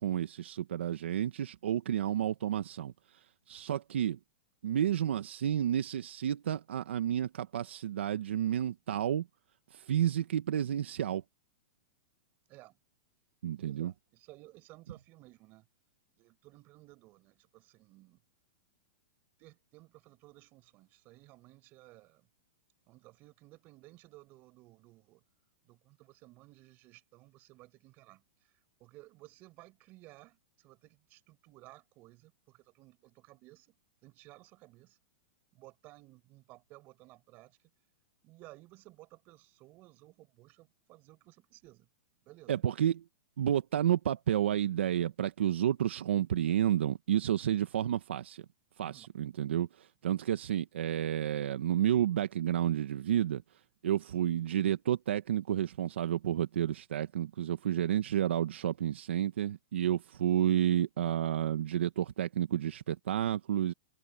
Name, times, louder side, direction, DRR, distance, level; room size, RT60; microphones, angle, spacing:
voice 1, 0.0-4.2 4.6-9.3 9.7-11.2 13.4-13.9 42.5-43.0 43.4-48.4 48.8-53.4 53.8-63.7, right 10 dB, 85° right, 1.1 m, -31 dB
voice 2, 12.5-12.8 13.6-15.7 16.1-18.2 19.4-22.3 22.9-25.2 25.6-33.8 34.0-35.0 35.5-37.7 38.2-41.9 42.2-42.6 48.8-49.1, right 20 dB, 30° right, 5.0 m, -57 dB
supercardioid pair, 155°, 6 cm